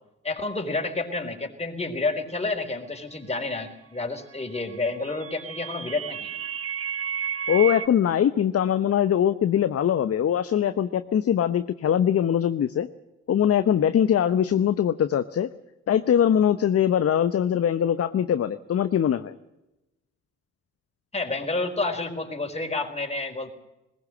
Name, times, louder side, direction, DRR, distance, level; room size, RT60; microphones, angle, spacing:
voice 1, 0.2-6.3 21.1-23.5, left 3 dB, 15° left, 4 dB, 4.4 m, -29 dB
sound 1, 4.7-7.9, right 8 dB, 40° right, 1.1 m, -32 dB
voice 2, 7.5-12.9 13.3-15.5 15.9-19.3, left 9 dB, 40° left, 12 dB, 0.9 m, -22 dB
20.5 x 18.5 x 7.8 m, 0.96 s
hypercardioid pair, 45°, 36 cm